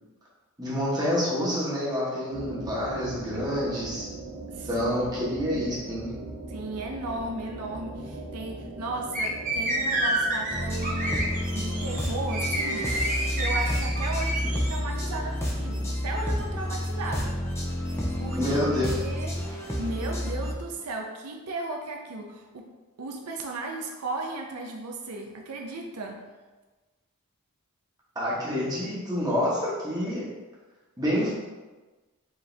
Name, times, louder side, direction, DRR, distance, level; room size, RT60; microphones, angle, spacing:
voice 1, 0.6-4.1 4.6-6.1 18.4-19.0 28.1-30.3 31.0-31.3, equal, 15° right, -7 dB, 1.1 m, -28 dB
sound 1, 2.3-15.0, right 2 dB, 70° right, 1.0 m, -41 dB
voice 2, 4.5-5.8 6.5-17.4 18.2-18.4 18.8-22.7 23.0-26.2, right 2 dB, 85° right, 1 dB, 0.5 m, -36 dB
sound 2, 9.1-14.8, right 1 dB, 35° right, 0.7 m, -29 dB
sound 3, 10.5-20.5, equal, 10° left, 0.5 m, -30 dB
4.8 x 2.7 x 3.3 m, 1.2 s
head